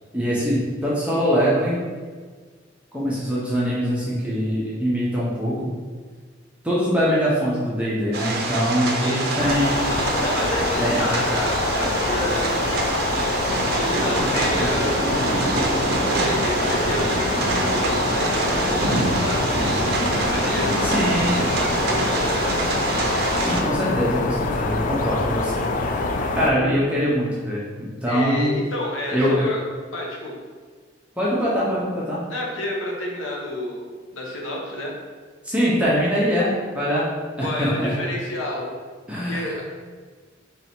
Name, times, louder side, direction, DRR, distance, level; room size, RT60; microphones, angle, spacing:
voice 1, 0.1-1.8 2.9-5.8 6.6-9.8 10.8-11.0 20.8-21.4 23.4-28.6 29.1-29.5 31.2-32.2 35.4-37.1 37.4-38.0 39.1-39.5, equal, 5° right, -8 dB, 0.6 m, -23 dB
sound 1, 8.1-23.6, right 2 dB, 55° right, 0.5 m, -25 dB
voice 2, 9.0-9.4 10.2-12.8 13.6-15.0 15.9-19.5 20.1-22.5 28.1-29.6 29.9-30.4 32.3-33.9 34.1-34.9 37.4-38.7 39.3-39.6, left 1 dB, 85° left, -2 dB, 0.9 m, -30 dB
sound 2, 9.4-26.5, left 3 dB, 40° left, 0.3 m, -25 dB
3.2 x 2.7 x 4.3 m, 1.5 s
head